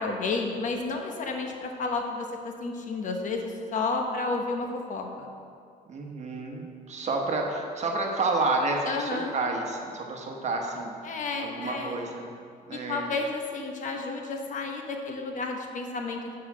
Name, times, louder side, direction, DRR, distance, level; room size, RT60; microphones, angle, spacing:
voice 1, 0.0-2.3 2.6-5.3 8.9-9.3 11.0-12.0 12.7-16.2, left 3 dB, 50° left, 2 dB, 1.1 m, -31 dB
voice 2, 5.9-12.3 12.7-13.1, right 3 dB, 40° right, 1 dB, 1.2 m, -30 dB
7.8 x 4.9 x 6.2 m, 2.3 s
cardioid pair, 110°, 17 cm